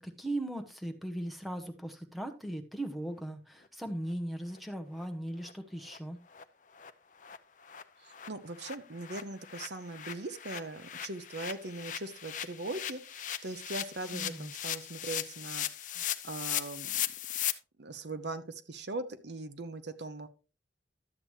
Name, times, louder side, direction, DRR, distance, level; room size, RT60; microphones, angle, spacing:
voice 1, 0.0-6.2 14.1-14.5, right 1 dB, ahead, 6 dB, 0.9 m, -38 dB
sound 1, 4.5-4.6 5.0-5.1 5.4-5.5 5.9-6.0 6.3-6.4 6.7-6.9 7.2-7.4 7.6-17.5, left 11 dB, 45° left, 0.6 m, -38 dB
voice 2, 8.3-15.7 15.9-17.0 17.8-20.3, right 2 dB, 65° right, 11 dB, 0.8 m, -40 dB
12.0 x 7.8 x 3.1 m, 0.32 s
head